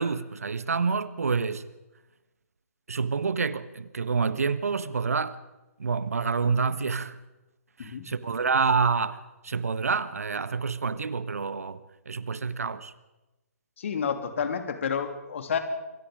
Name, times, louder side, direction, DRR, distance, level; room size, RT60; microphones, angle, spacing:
voice 1, 0.0-1.6 2.9-5.4 5.8-7.2 7.8-9.2 9.4-12.9, right 5 dB, 70° right, 1.4 m, -28 dB
voice 2, 13.8-15.6, left 7 dB, 55° left, 3.0 m, -30 dB
27.0 x 23.0 x 5.1 m
figure-of-eight pair, 130°, 8 cm